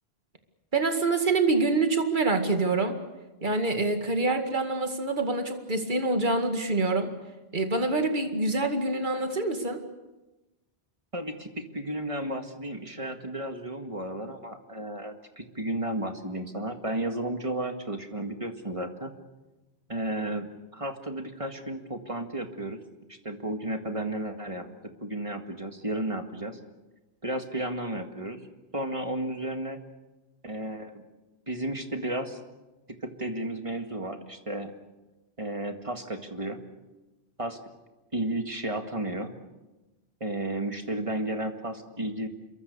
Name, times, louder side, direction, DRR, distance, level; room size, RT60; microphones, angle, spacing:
voice 1, 0.7-3.0 3.4-7.1 7.5-9.8, right 3 dB, 50° right, 6 dB, 2.3 m, -26 dB
voice 2, 11.1-19.1 19.9-22.8 23.1-26.6 27.2-28.4 28.7-29.8 30.4-31.0 31.5-32.4 33.0-34.7 35.4-36.6 37.4-37.6 38.1-39.3 40.2-42.3, right 1 dB, 30° right, 5 dB, 2.0 m, -33 dB
27.0 x 23.0 x 6.8 m, 1.1 s
omnidirectional pair, 1.1 m